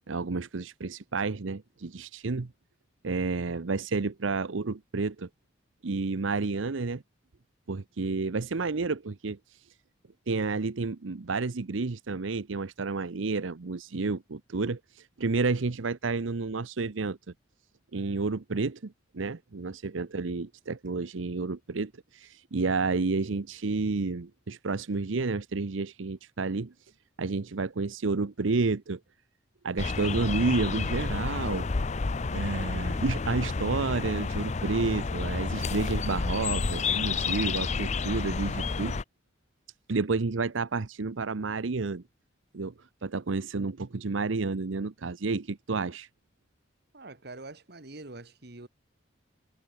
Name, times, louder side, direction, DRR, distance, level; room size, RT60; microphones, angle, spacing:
voice 1, 0.1-2.5 3.0-5.3 5.8-7.0 7.7-9.4 10.3-17.2 17.9-26.7 27.2-29.0 29.6-31.7 32.3-39.0 39.9-42.0 42.5-42.7 43.0-46.1, right 3 dB, 85° right, 0.8 m, -30 dB
sound 1, 29.8-39.0, left 4 dB, 35° left, 0.5 m, -30 dB
voice 2, 46.9-48.7, right 2 dB, 55° right, 1.8 m, -45 dB
head